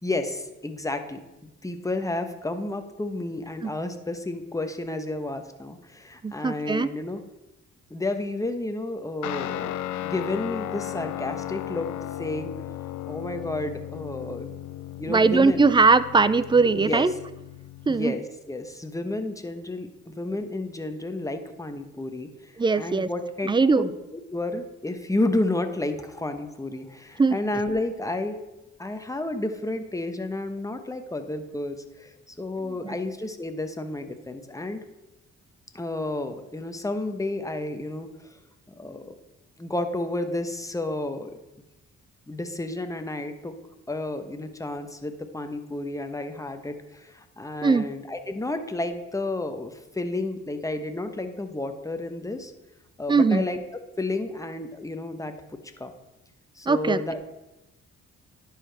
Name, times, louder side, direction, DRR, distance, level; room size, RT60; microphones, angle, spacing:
voice 1, 0.0-7.2 7.9-11.9 12.2-12.5 13.1-14.5 15.0-15.7 16.5-17.1 17.9-23.5 23.8-23.9 24.3-28.5 28.8-34.8 35.7-38.4 38.7-39.1 39.6-41.4 42.3-43.6 43.9-52.5 53.0-53.6 54.0-55.3 55.8-55.9 56.6-57.2, left 2 dB, 10° left, 7 dB, 0.9 m, -31 dB
voice 2, 6.2-6.9 15.1-17.1 17.9-18.2 22.6-23.1 23.5-23.9 27.2-27.4 32.8-32.9 47.6-47.9 53.1-53.4 56.7-57.0, right 4 dB, 15° right, 15 dB, 0.4 m, -20 dB
Guitar, 9.2-18.0, left 13 dB, 55° left, 0.5 m, -35 dB
11.0 x 4.8 x 3.4 m, 0.96 s
supercardioid pair, 50°, 35 cm